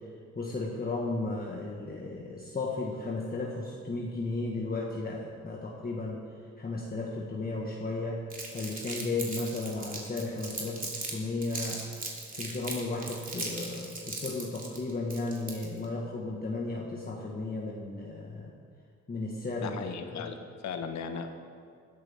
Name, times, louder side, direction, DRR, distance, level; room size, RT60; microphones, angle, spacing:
voice 1, 0.3-6.2 6.6-8.2 8.5-11.8 12.3-18.5 19.1-19.8 20.1-20.3, left 2 dB, 30° left, -2 dB, 1.7 m, -34 dB
Crumpling crinkling, 8.3-11.1 11.4-15.8, right 2 dB, 30° right, 3.0 m, -38 dB
voice 2, 19.6-21.3, left 6 dB, 65° left, 6 dB, 1.3 m, -37 dB
19.5 x 12.0 x 3.7 m, 2.2 s
cardioid pair, 90°, 30 cm